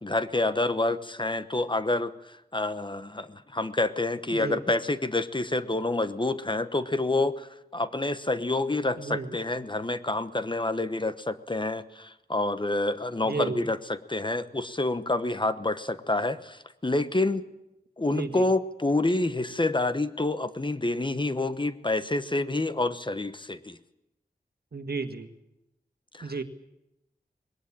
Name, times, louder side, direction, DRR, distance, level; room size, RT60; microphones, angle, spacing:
voice 1, 0.0-7.5 7.7-17.5 18.0-23.8 26.1-26.3, left 2 dB, 30° left, 12 dB, 1.0 m, -28 dB
voice 2, 4.3-4.6 9.0-9.4 13.2-13.6 18.1-18.5 24.7-25.3 26.2-26.4, right 4 dB, 70° right, 8 dB, 1.7 m, -33 dB
20.5 x 18.5 x 8.6 m, 0.91 s
wide cardioid pair, 65°, 17 cm